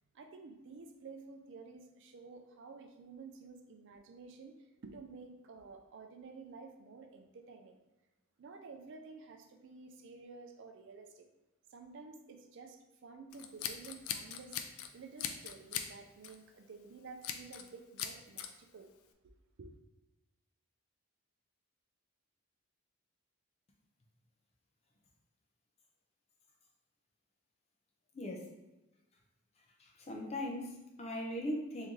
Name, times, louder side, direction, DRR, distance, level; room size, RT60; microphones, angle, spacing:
voice 1, 0.1-7.8 8.4-11.3 11.7-14.6 14.9-18.9 19.6-19.7, right 4 dB, 55° right, 4 dB, 0.4 m, -52 dB
Scissors, 13.3-14.9 15.2-15.9 16.2-16.5 17.2-17.7 18.0-18.5, left 9 dB, 80° left, 0.3 m, -40 dB
voice 2, 28.1-28.5 29.8-31.9, left 1 dB, 30° left, 0 dB, 0.5 m, -39 dB
3.1 x 2.7 x 3.6 m, 1.1 s
head